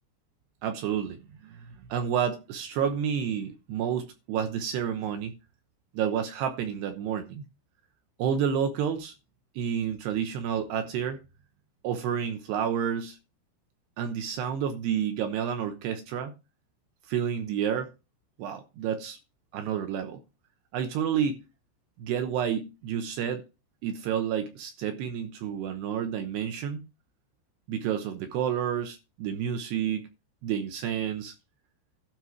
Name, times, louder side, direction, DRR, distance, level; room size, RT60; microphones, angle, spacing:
voice 1, 0.6-5.3 5.9-7.4 8.2-9.1 9.6-11.2 11.8-13.2 14.0-16.3 17.1-17.9 18.4-19.2 19.5-20.2 20.7-21.4 22.0-23.4 23.8-26.8 27.7-30.0 30.4-31.4, right 8 dB, 75° right, 2.6 m, -30 dB
12.5 x 4.7 x 6.2 m
omnidirectional pair, 5.8 m